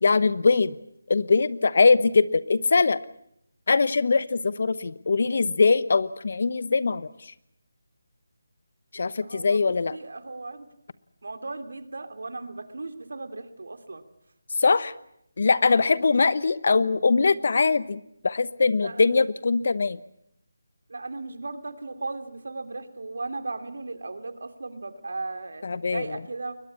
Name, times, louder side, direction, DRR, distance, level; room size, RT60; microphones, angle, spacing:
voice 1, 0.0-0.8 1.1-3.0 3.7-7.1 8.9-9.9 14.6-14.9 15.4-20.0 25.6-26.0, left 4 dB, 55° left, 17 dB, 1.0 m, -22 dB
voice 2, 9.2-10.7 11.2-14.0 15.7-15.9 18.8-19.1 20.9-26.6, right 3 dB, 65° right, 8 dB, 2.7 m, -36 dB
22.0 x 20.5 x 8.7 m, 0.74 s
figure-of-eight pair, 160°, 0 cm